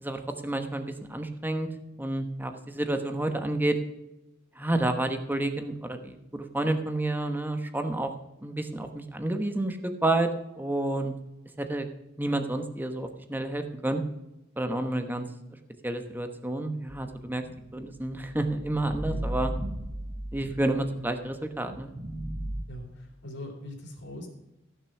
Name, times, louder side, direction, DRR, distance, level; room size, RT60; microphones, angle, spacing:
voice 1, 0.0-1.7 2.0-3.8 4.6-8.1 8.4-10.3 10.6-11.1 11.6-11.9 12.2-14.0 14.6-15.2 15.8-17.4 17.7-19.5 20.3-21.9, right 1 dB, 10° right, 7 dB, 1.0 m, -30 dB
sound 1, 16.9-21.2 21.7-22.6, right 1 dB, 35° right, 1.2 m, -36 dB
voice 2, 22.7-24.3, equal, 60° left, 2 dB, 3.0 m, -41 dB
15.0 x 6.9 x 5.9 m, 0.93 s
head